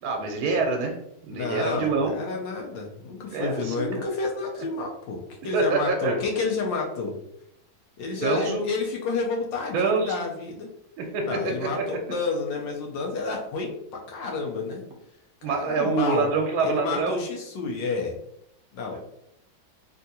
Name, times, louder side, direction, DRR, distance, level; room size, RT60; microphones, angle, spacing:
voice 1, 0.0-0.9 1.2-2.1 3.3-4.0 5.5-6.2 8.2-8.6 9.7-10.2 11.0-11.8 15.4-17.2, right 4 dB, 80° right, 2 dB, 1.4 m, -26 dB
voice 2, 1.3-7.1 8.0-10.7 11.2-13.8 14.1-14.8 15.4-16.3 16.6-18.1 18.7-19.0, left 4 dB, 70° left, 0 dB, 1.3 m, -30 dB
3.5 x 2.5 x 2.7 m, 0.77 s
omnidirectional pair, 2.2 m